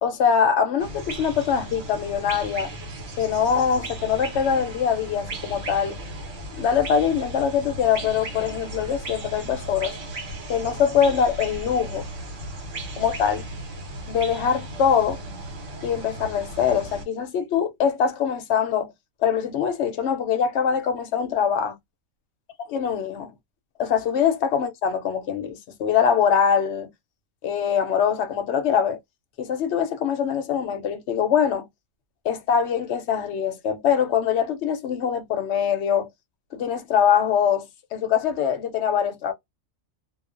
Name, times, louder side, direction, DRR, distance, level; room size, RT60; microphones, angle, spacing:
voice 1, 0.0-2.7 3.2-5.9 6.5-10.0 10.5-12.1 13.0-13.4 14.1-15.2 15.8-18.9 19.2-21.8 22.7-23.3 23.8-26.9 27.4-29.0 29.4-31.7 32.2-36.1 36.5-39.3, left 7 dB, 65° left, 0.9 m, -23 dB
sound 1, 0.8-17.1, right 1 dB, 75° right, 1.3 m, -36 dB
2.4 x 2.3 x 2.4 m
omnidirectional pair, 1.3 m